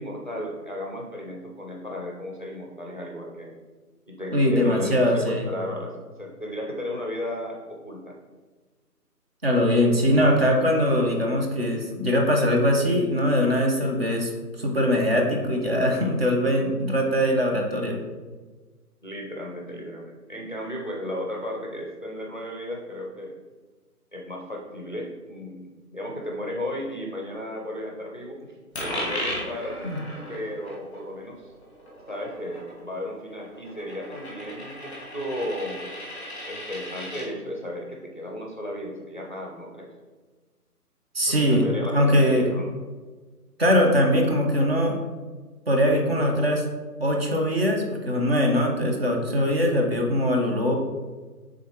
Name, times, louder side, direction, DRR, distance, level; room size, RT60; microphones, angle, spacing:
voice 1, 0.0-3.5 4.1-8.1 19.0-23.3 24.1-29.8 30.3-31.5 32.1-35.8 36.5-39.9 41.2-42.8, left 1 dB, 30° left, -1 dB, 0.6 m, -34 dB
voice 2, 4.3-5.5 9.4-14.3 14.6-18.0 29.8-30.0 41.1-41.7 41.9-42.5 43.6-45.0 45.7-46.6 47.0-50.7, equal, 40° right, 1 dB, 0.9 m, -22 dB
Coin (dropping), 28.7-37.3, left 1 dB, ahead, 0.8 m, -36 dB
9.2 x 3.7 x 3.0 m, 1.4 s
figure-of-eight pair, 150°, 47 cm